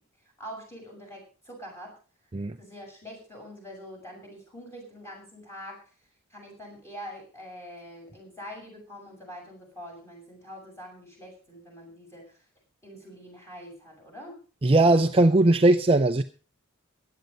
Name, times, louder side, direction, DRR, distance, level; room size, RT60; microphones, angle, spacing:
voice 1, 0.4-1.9 2.6-5.8 6.3-12.4 12.8-14.4, equal, 10° left, -1 dB, 6.9 m, -44 dB
voice 2, 14.6-16.2, right 2 dB, 25° right, 7 dB, 0.6 m, -19 dB
15.5 x 10.5 x 5.3 m, 0.37 s
head